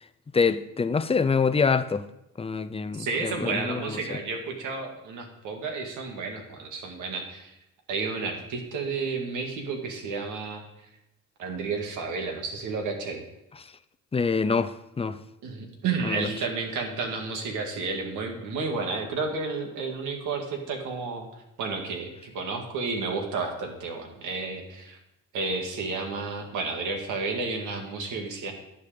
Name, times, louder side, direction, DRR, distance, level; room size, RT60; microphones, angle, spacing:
voice 1, 0.3-2.0 2.4-4.0 14.1-15.2 16.0-16.3, left 5 dB, 20° left, 0.6 m, -25 dB
voice 2, 3.0-7.6 7.9-10.6 11.4-13.2 15.4-21.3 21.6-25.0 25.3-28.5, right 4 dB, 80° right, 2.1 m, -31 dB
11.0 x 7.8 x 5.1 m
cardioid pair, 90°, 30 cm